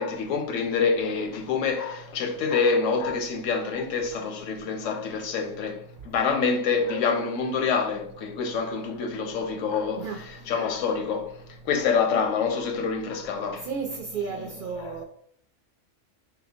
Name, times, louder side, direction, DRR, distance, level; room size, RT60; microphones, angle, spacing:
voice 1, 0.0-11.3 11.6-13.7 14.3-14.9, left 5 dB, 80° left, 1.0 m, -27 dB
voice 2, 9.9-10.2 13.6-15.0, right 5 dB, 65° right, 0.5 m, -33 dB
3.6 x 2.1 x 4.2 m
omnidirectional pair, 1.3 m